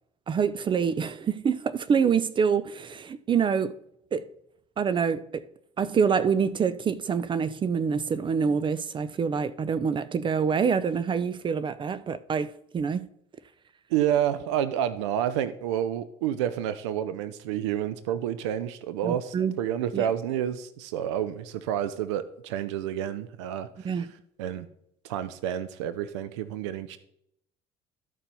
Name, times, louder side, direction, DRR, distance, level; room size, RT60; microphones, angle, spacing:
voice 1, 0.3-3.7 4.1-4.2 4.8-5.4 5.8-13.1 19.0-19.6 19.9-20.1 23.8-24.1, right 6 dB, 35° right, 0.5 m, -26 dB
voice 2, 13.9-24.0 24.4-24.7 25.0-27.0, right 10 dB, 85° right, 0.5 m, -29 dB
12.5 x 4.4 x 5.4 m
supercardioid pair, 80°, 15 cm